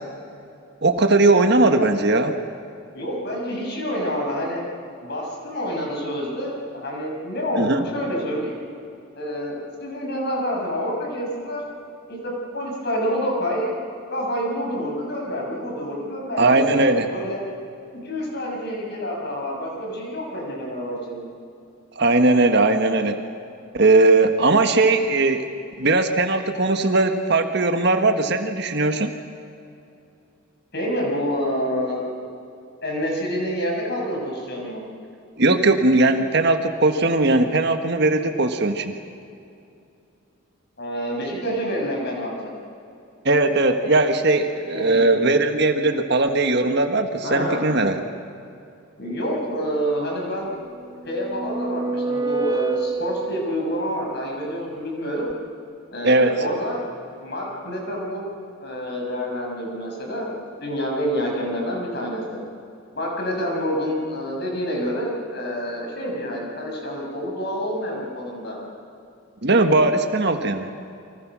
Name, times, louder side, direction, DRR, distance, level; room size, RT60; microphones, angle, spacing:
voice 1, 0.8-2.4 7.6-7.9 16.4-17.1 21.9-23.2 23.7-25.5 25.8-29.1 35.4-38.9 43.2-48.0 56.0-56.4 69.4-70.7, right 2 dB, 50° right, 6 dB, 1.6 m, -19 dB
voice 2, 2.9-4.6 5.0-8.6 9.1-11.6 12.1-13.7 14.1-16.8 17.1-17.4 18.0-21.3 30.7-32.0 32.8-34.8 40.8-42.5 44.7-45.1 47.2-47.6 49.0-50.5 51.1-55.3 55.9-56.8 57.2-58.2 58.6-62.4 63.0-68.5, equal, 50° left, -1 dB, 6.9 m, -27 dB
sound 1, 50.8-53.9, right 4 dB, 15° right, 0.7 m, -27 dB
29.5 x 24.5 x 6.3 m, 2.6 s
head